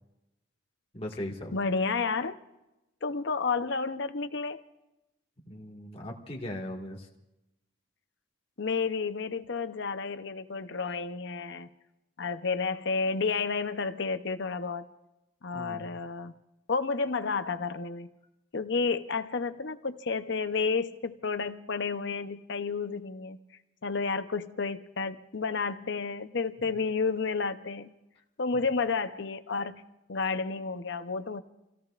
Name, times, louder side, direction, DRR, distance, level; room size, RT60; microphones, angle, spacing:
voice 1, 0.9-1.5 5.4-7.1 15.5-16.0, left 1 dB, 30° left, 0 dB, 1.9 m, -39 dB
voice 2, 1.5-2.4 3.0-4.6 8.6-11.7 12.2-14.9 15.4-16.3 16.7-18.1 18.5-23.4 23.8-27.9 28.4-29.8 30.1-31.4, left 4 dB, 60° left, 10 dB, 0.8 m, -31 dB
30.0 x 17.0 x 2.5 m, 0.94 s
head